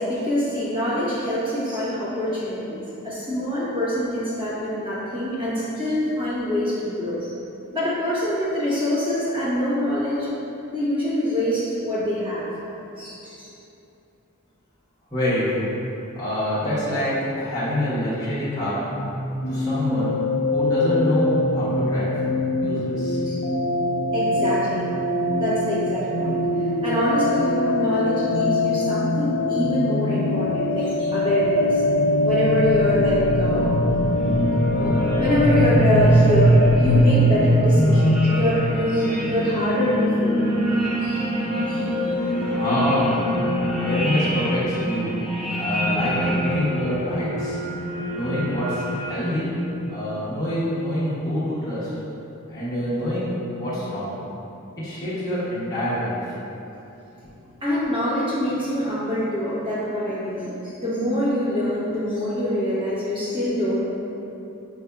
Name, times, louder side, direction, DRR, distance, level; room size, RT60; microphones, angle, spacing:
voice 1, 0.0-7.3 7.7-10.3 10.7-12.5 13.0-13.5 23.3-23.4 24.1-24.9 25.4-26.4 26.8-31.8 32.2-33.7 34.7-40.4 41.0-41.2 41.5-42.4 57.6-63.8, equal, 25° right, -10 dB, 1.1 m, -25 dB
voice 2, 15.1-15.7 16.1-18.8 19.5-20.1 20.5-22.1 22.6-23.2 42.5-43.3 43.7-45.1 45.6-47.6 48.1-49.6 49.9-51.9 52.5-54.2 54.8-56.4, equal, 15° left, -12 dB, 1.1 m, -26 dB
sound 1, 19.0-38.5, left 2 dB, 70° left, 0.5 m, -24 dB
sound 2, 31.4-49.8, equal, ahead, 0.5 m, -22 dB
6.2 x 2.6 x 2.3 m, 2.9 s
head